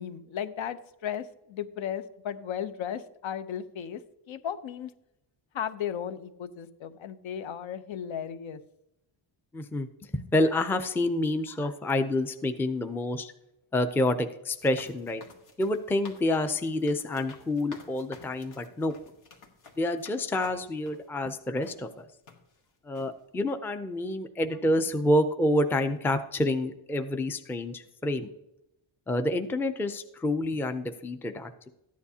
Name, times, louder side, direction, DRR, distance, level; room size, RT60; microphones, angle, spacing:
voice 1, 0.0-4.0 4.3-4.9 5.5-8.6, left 9 dB, 70° left, 11 dB, 0.8 m, -35 dB
voice 2, 9.5-9.9 10.1-13.3 13.7-15.2 15.6-18.9 19.8-22.1 22.9-28.3 29.1-31.5, left 1 dB, 5° left, 8 dB, 0.4 m, -28 dB
sound 1, 14.5-21.1 21.6-21.8 22.3-22.6 22.9-23.1, left 4 dB, 90° left, 1.7 m, -51 dB
13.5 x 9.5 x 2.8 m, 0.86 s
cardioid pair, 130°, 49 cm